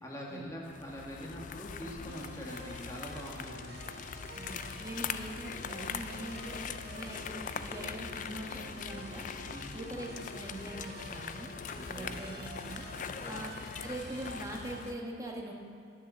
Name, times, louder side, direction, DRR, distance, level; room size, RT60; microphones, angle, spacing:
voice 1, 0.0-3.9 9.5-10.0 11.8-12.2 13.0-13.4, equal, 20° left, -3 dB, 1.6 m, -44 dB
sound 1, 0.6-14.9, left 6 dB, 45° left, 0.3 m, -42 dB
sound 2, 2.1-14.9, right 2 dB, 60° right, 0.9 m, -50 dB
voice 2, 4.4-9.3 9.7-11.5 11.9-12.9 13.3-13.5 13.8-15.5, right 1 dB, 20° right, 0 dB, 1.2 m, -42 dB
10.0 x 6.6 x 6.6 m, 2.4 s
head